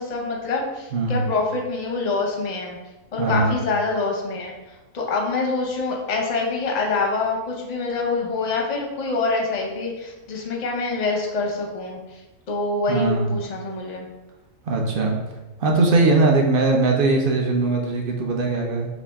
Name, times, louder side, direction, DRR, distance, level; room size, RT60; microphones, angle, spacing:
voice 1, 0.0-2.8 3.1-12.2 12.5-14.1, left 3 dB, 45° left, 0 dB, 0.6 m, -26 dB
voice 2, 0.9-1.2 3.2-3.5 12.9-13.3 14.7-15.2 15.6-18.9, right 3 dB, 55° right, 1 dB, 0.6 m, -20 dB
4.1 x 2.9 x 3.4 m, 1.1 s
omnidirectional pair, 1.6 m